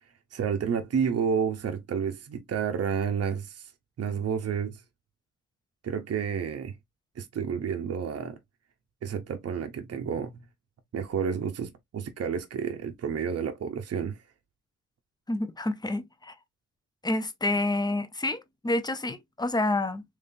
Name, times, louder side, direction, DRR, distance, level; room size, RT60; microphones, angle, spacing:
voice 1, 0.3-3.7 4.0-4.8 5.8-6.8 7.2-8.4 9.0-10.4 10.9-14.2, right 7 dB, 55° right, 0.7 m, -30 dB
voice 2, 15.3-16.3 17.0-20.0, left 2 dB, 15° left, 0.5 m, -28 dB
3.8 x 3.1 x 2.5 m
cardioid pair, 105°, 30 cm